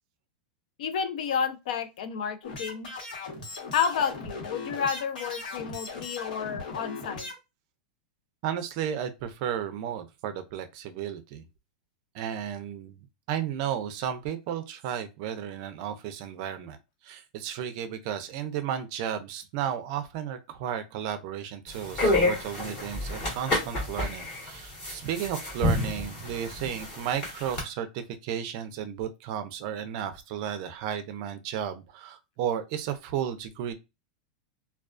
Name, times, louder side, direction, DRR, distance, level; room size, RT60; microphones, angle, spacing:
voice 1, 0.8-2.9 3.7-7.3, left 7 dB, 65° left, 0.5 m, -30 dB
sound 1, 2.4-7.3, left 3 dB, 90° left, 1.1 m, -38 dB
voice 2, 8.4-11.5 12.1-16.8 17.0-33.7, right 9 dB, 40° right, 0.4 m, -33 dB
sound 2, 21.7-27.6, left 1 dB, 25° left, 1.1 m, -29 dB
2.3 x 2.3 x 2.4 m
supercardioid pair, 170°, 5 cm